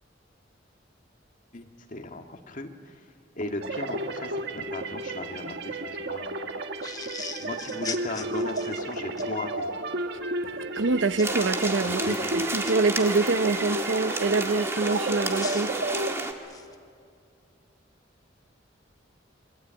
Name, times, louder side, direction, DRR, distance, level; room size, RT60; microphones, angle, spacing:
voice 1, 1.5-3.0 3.4-6.3 7.4-9.7 11.9-12.5 15.7-15.8, left 2 dB, 45° left, 4 dB, 2.0 m, -37 dB
sound 1, 3.6-16.2, right 2 dB, 60° right, 1.4 m, -33 dB
sound 2, 6.8-9.3 11.2-11.4 12.0-12.7 14.9-16.8, left 5 dB, 20° left, 1.3 m, -40 dB
voice 2, 10.8-15.7, right 3 dB, 85° right, 12 dB, 0.9 m, -25 dB
sound 3, 11.2-16.3, right 2 dB, 15° right, 1.8 m, -31 dB
26.5 x 23.5 x 8.9 m, 2.3 s
head